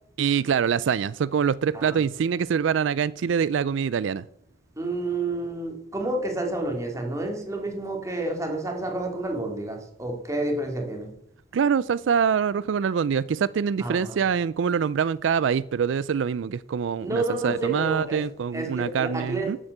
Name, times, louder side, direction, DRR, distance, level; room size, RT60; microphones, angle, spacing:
voice 1, 0.2-4.2 11.5-19.6, right 7 dB, 80° right, 19 dB, 0.4 m, -25 dB
voice 2, 4.8-11.1 13.8-14.2 17.0-18.2 18.5-19.5, right 2 dB, 15° right, 2 dB, 2.5 m, -29 dB
13.0 x 8.0 x 6.6 m, 0.76 s
head